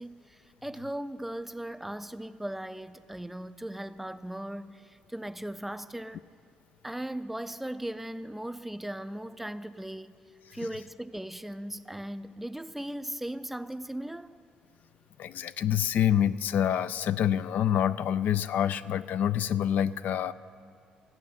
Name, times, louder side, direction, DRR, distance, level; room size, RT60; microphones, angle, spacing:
voice 1, 0.0-6.3 6.8-10.1 10.5-14.4, right 1 dB, 5° right, 0.4 m, -38 dB
voice 2, 15.2-20.3, left 10 dB, 65° left, 0.3 m, -27 dB
14.5 x 8.5 x 7.1 m
cardioid pair, 85°, 3 cm